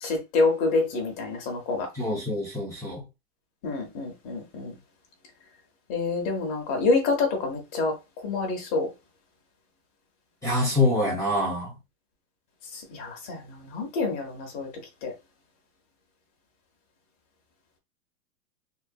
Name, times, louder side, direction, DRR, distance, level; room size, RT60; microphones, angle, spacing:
voice 1, 0.0-1.9 3.6-4.7 5.9-7.9 8.2-8.9 12.9-14.7 15.0-15.1, left 3 dB, 30° left, 1.1 m, -27 dB
voice 2, 1.9-3.0 10.4-11.7, left 2 dB, 5° left, 0.7 m, -25 dB
3.6 x 2.9 x 2.4 m
hypercardioid pair, 150°, 47 cm